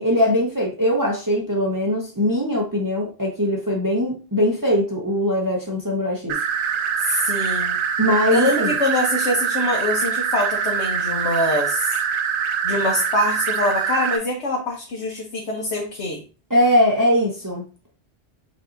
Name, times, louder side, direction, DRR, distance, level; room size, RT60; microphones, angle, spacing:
voice 1, 0.0-6.4 8.0-8.7 16.5-17.6, equal, 20° right, 0.9 m, -21 dB
sound 1, 6.3-14.2, right 7 dB, 60° right, 0.7 m, -24 dB
voice 2, 7.0-7.8 8.3-12.0 12.6-16.2, left 1 dB, 85° left, 1.2 m, -24 dB
6.6 x 2.9 x 2.6 m
omnidirectional pair, 1.1 m